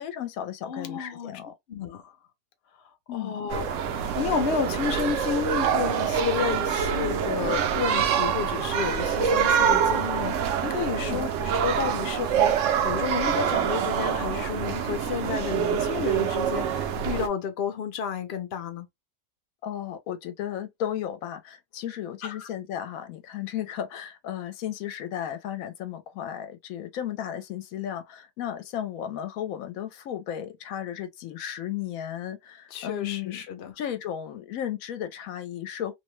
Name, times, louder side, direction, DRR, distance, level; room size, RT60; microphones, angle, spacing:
voice 1, 0.0-1.5 3.1-3.4 11.0-11.2 19.6-33.4 33.8-35.9, left 10 dB, 75° left, 1.0 m, -34 dB
voice 2, 0.6-1.3 1.7-2.1 3.1-3.7 4.2-18.9 22.2-22.5 32.7-33.7, left 7 dB, 60° left, 0.7 m, -31 dB
sound 1, 3.5-17.3, right 8 dB, 70° right, 0.8 m, -25 dB
2.6 x 2.1 x 3.0 m
omnidirectional pair, 1.5 m